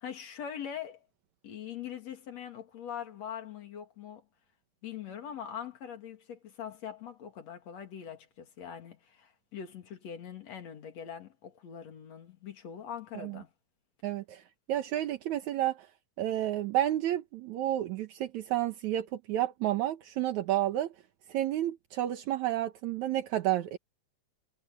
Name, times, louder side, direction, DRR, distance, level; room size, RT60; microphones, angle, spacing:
voice 1, 0.0-1.1 1.4-4.2 4.8-13.5, left 8 dB, 65° left, 3.4 m, -42 dB
voice 2, 14.0-14.4 14.7-15.9 16.2-20.9 21.3-23.8, right 13 dB, 75° right, 2.5 m, -31 dB
omnidirectional pair, 3.4 m